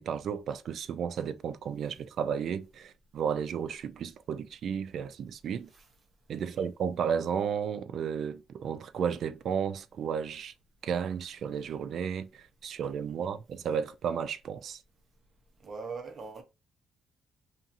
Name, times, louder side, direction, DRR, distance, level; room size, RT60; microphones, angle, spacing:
voice 1, 0.0-5.7 6.3-10.5 10.8-14.8, right 7 dB, 65° right, 0.4 m, -33 dB
voice 2, 15.6-16.4, right 4 dB, 45° right, 0.9 m, -42 dB
2.7 x 2.6 x 2.5 m
cardioid pair, 90°, 0 cm